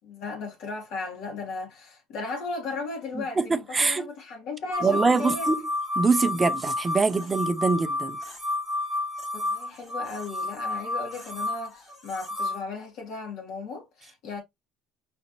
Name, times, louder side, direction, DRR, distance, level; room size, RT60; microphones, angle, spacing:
voice 1, 0.0-5.5 9.3-14.4, left 3 dB, 55° left, 2.3 m, -36 dB
voice 2, 3.1-4.0 4.8-5.6 6.0-8.2, right 4 dB, 15° right, 0.4 m, -24 dB
sound 1, 4.7-12.6, left 2 dB, 15° left, 1.3 m, -31 dB
4.9 x 3.2 x 2.7 m
cardioid pair, 175°, 0 cm